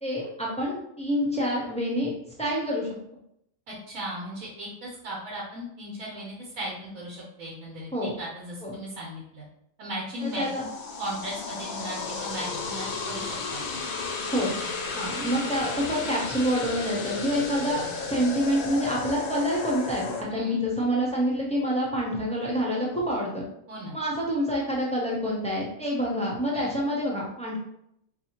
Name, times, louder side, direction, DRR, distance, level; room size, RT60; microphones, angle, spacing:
voice 1, 0.0-2.1 2.4-2.9 7.9-8.1 8.6-8.7 10.2-10.6 14.3-14.5 14.9-23.4 23.9-27.6, equal, 10° left, -4 dB, 0.4 m, -27 dB
voice 2, 3.7-9.4 9.8-10.7 11.0-13.8 20.3-20.6 23.7-24.0 26.5-26.8, equal, 85° right, -4 dB, 1.2 m, -37 dB
sound 1, 10.2-20.2, left 4 dB, 90° left, 1.1 m, -33 dB
3.9 x 2.7 x 2.9 m, 0.76 s
omnidirectional pair, 1.4 m